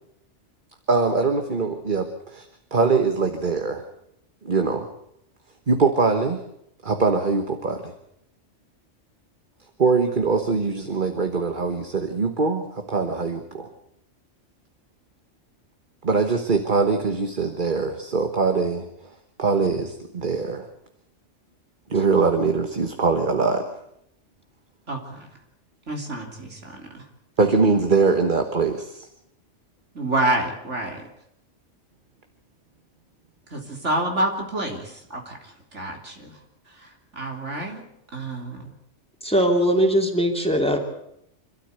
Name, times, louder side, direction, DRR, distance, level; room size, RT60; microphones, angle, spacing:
voice 1, 0.9-2.4 2.7-3.8 4.4-4.9 5.7-6.4 6.8-7.9 9.8-13.7 16.0-18.9 19.4-20.7 21.9-23.7 27.4-29.1, right 4 dB, 45° right, 5 dB, 1.6 m, -22 dB
voice 2, 24.9-25.3 25.9-27.1 29.9-31.0 33.5-36.4 36.7-37.8 38.1-38.7, right 1 dB, 75° right, 1 dB, 3.7 m, -28 dB
voice 3, 39.2-40.8, equal, 5° left, 2 dB, 2.8 m, -20 dB
26.5 x 13.0 x 8.1 m, 0.76 s
omnidirectional pair, 1.2 m